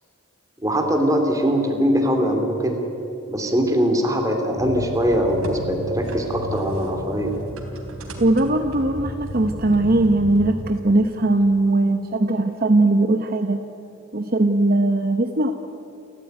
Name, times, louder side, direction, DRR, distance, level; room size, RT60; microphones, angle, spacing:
voice 1, 0.6-2.8 3.3-7.3, equal, 15° right, 3 dB, 2.9 m, -21 dB
sound 1, 4.6-10.7, equal, 90° right, 3.6 m, -33 dB
voice 2, 8.2-13.6 14.1-15.5, right 2 dB, 45° right, 6 dB, 0.9 m, -19 dB
29.0 x 14.5 x 9.4 m, 2.9 s
head